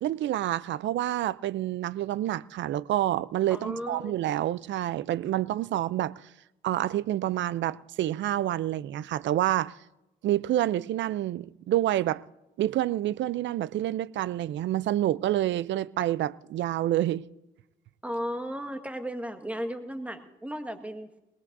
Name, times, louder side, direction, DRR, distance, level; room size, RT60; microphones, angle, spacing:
voice 1, 0.0-6.1 6.6-9.7 10.2-12.2 12.6-17.3, right 13 dB, 70° right, 0.5 m, -28 dB
voice 2, 3.5-4.1 18.0-21.1, equal, 5° right, 1.6 m, -35 dB
21.0 x 19.0 x 2.7 m
cardioid pair, 90°, 20 cm